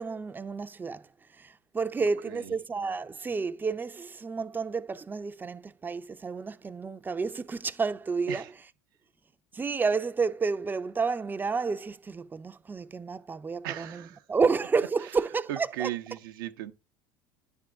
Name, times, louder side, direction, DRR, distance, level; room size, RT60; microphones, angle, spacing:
voice 1, 0.0-8.5 9.5-15.9, right 4 dB, 15° right, 0.4 m, -30 dB
voice 2, 13.6-14.2 15.5-16.7, right 13 dB, 85° right, 0.6 m, -36 dB
9.9 x 3.6 x 5.9 m
supercardioid pair, 90°, 11 cm